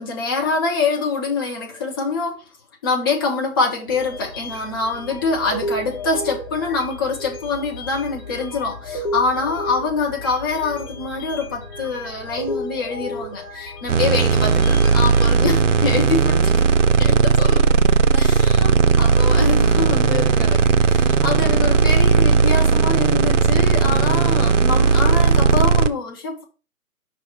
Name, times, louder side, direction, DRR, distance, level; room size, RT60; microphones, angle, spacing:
voice 1, 0.0-2.4 2.8-16.5 17.0-17.7 18.1-26.4, left 4 dB, 15° left, 0.7 m, -25 dB
sound 1, 3.9-15.3, left 1 dB, 40° left, 2.1 m, -33 dB
sound 2, 13.9-25.9, right 5 dB, 60° right, 0.7 m, -16 dB
5.4 x 3.2 x 5.5 m
figure-of-eight pair, 135°, 42 cm